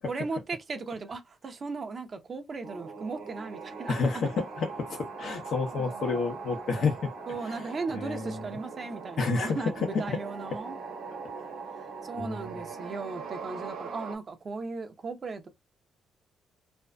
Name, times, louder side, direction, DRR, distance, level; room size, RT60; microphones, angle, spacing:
voice 1, 0.0-4.0 5.7-6.3 7.3-10.8 12.0-15.5, right 4 dB, 40° right, 0.7 m, -37 dB
sound 1, 2.6-14.2, right 5 dB, 85° right, 0.9 m, -41 dB
voice 2, 3.9-7.1 7.5-7.6 7.9-8.4 9.2-9.6 9.9-10.2 12.2-12.5, left 4 dB, 65° left, 0.8 m, -30 dB
2.5 x 2.3 x 2.2 m
cardioid pair, 90°, 0 cm